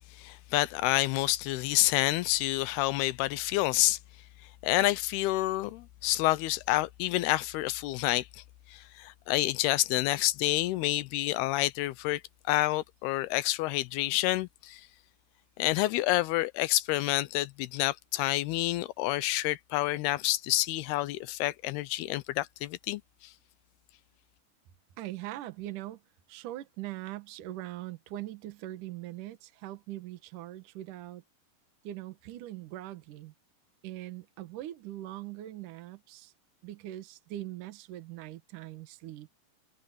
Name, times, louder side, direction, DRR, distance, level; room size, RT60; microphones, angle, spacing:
voice 1, 0.1-4.0 4.6-8.4 8.7-12.2 12.5-14.9 15.6-23.3, left 17 dB, 85° left, 2.7 m, -28 dB
voice 2, 25.0-26.0 26.3-31.2 31.8-33.3 33.8-36.3 36.6-39.3, right 14 dB, 65° right, 2.6 m, -41 dB
omnidirectional pair, 4.6 m